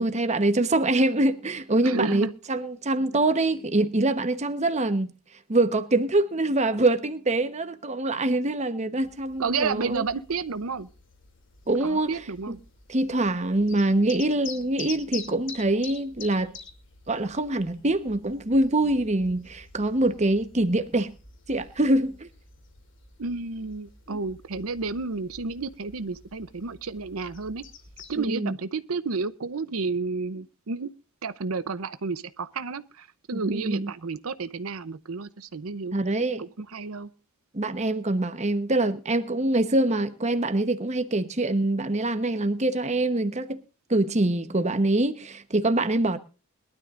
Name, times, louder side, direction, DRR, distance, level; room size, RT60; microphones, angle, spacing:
voice 1, 0.0-5.1 5.5-10.0 11.7-12.1 12.5-12.6 12.9-16.5 17.1-21.1 21.5-22.3 24.1-24.2 28.2-28.5 33.4-33.9 35.9-36.4 37.5-43.6 43.9-46.2, right 2 dB, 35° right, 1.1 m, -24 dB
voice 2, 1.7-2.3 9.4-10.9 11.8-12.6 23.2-27.6 28.1-30.9 31.2-37.1, right 4 dB, 90° right, 0.7 m, -31 dB
sound 1, 9.0-28.3, left 5 dB, 60° left, 2.8 m, -47 dB
22.0 x 12.5 x 2.5 m
head